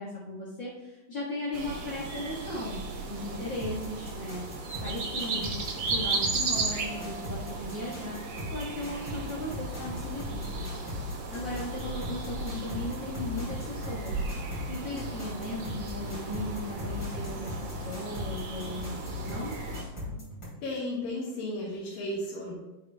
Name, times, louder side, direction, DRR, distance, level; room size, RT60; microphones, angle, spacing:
voice 1, 0.0-4.5 4.8-5.6 5.9-8.2 8.5-10.6 11.3-19.5, left 1 dB, 45° left, -8 dB, 1.7 m, -37 dB
sound 1, 1.5-19.8, right 4 dB, 75° right, 1.0 m, -36 dB
sound 2, 3.6-20.5, left 2 dB, 30° left, 3.1 m, -39 dB
voice 2, 20.6-22.5, left 1 dB, 80° left, -8 dB, 3.4 m, -34 dB
14.5 x 4.9 x 2.3 m, 1.1 s
omnidirectional pair, 3.9 m